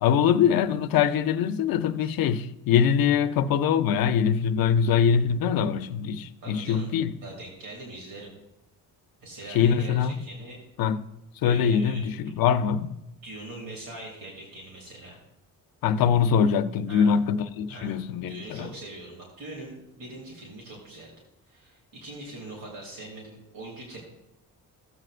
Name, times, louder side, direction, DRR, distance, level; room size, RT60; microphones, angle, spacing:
voice 1, 0.0-7.1 9.5-10.1 10.8-11.0 11.4-13.0 15.8-18.7, left 7 dB, 80° left, 0.6 m, -23 dB
voice 2, 6.4-6.9 7.2-8.3 9.2-10.6 11.4-12.4 13.2-15.2 16.9-17.2 17.7-18.0 18.3-21.1 21.5-24.0, right 2 dB, 80° right, 2.8 m, -42 dB
16.0 x 7.7 x 2.5 m
cardioid pair, 150°, 35 cm